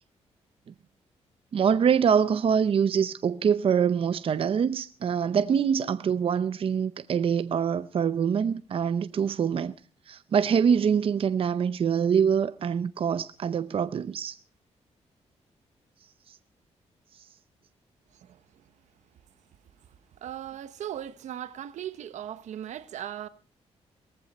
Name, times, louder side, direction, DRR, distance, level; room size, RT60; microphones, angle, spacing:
voice 1, 1.5-9.8 10.1-14.4, right 7 dB, 50° right, 0.6 m, -24 dB
voice 2, 18.1-18.6 20.2-23.3, right 11 dB, 85° right, 1.1 m, -38 dB
18.5 x 15.0 x 4.2 m
cardioid pair, 100°, 12 cm